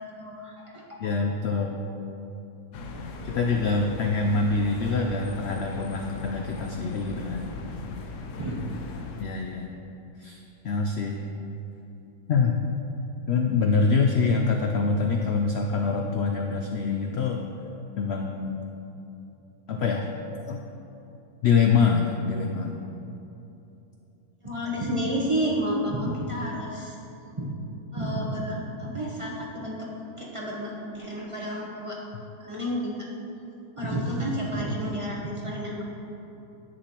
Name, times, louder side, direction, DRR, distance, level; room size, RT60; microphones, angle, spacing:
voice 1, 0.0-1.0 8.4-8.6 24.4-27.0 27.4-27.5 27.9-29.9 30.2-32.1 32.4-33.1 33.8-35.8, equal, 25° right, -4 dB, 0.8 m, -30 dB
voice 2, 1.0-1.8 3.2-7.5 9.2-9.7 10.2-11.2 12.3-12.6 13.3-17.5 18.0-18.6 19.7-20.1 20.5-20.6 21.4-22.8, left 4 dB, 80° left, 3 dB, 0.5 m, -25 dB
sound 1, 2.7-9.2, left 3 dB, 60° left, 0.9 m, -38 dB
10.0 x 7.8 x 2.9 m, 2.9 s
omnidirectional pair, 1.7 m